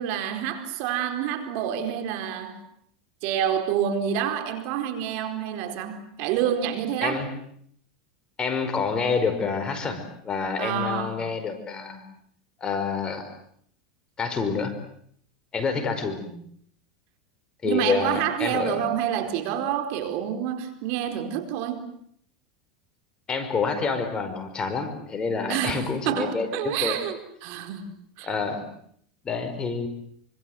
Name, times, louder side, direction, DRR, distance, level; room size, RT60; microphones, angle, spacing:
voice 1, 0.0-2.6 3.2-7.2 10.6-11.3 16.0-16.3 17.6-21.8 25.5-27.9 28.2-28.3, right 9 dB, 60° right, 7 dB, 4.5 m, -28 dB
voice 2, 8.4-12.0 12.6-13.3 14.2-14.7 15.5-16.2 17.6-18.8 23.3-27.0 28.2-28.6 29.2-29.9, left 5 dB, 25° left, 8 dB, 5.2 m, -27 dB
27.0 x 25.5 x 8.0 m, 0.66 s
supercardioid pair, 120°, 4 cm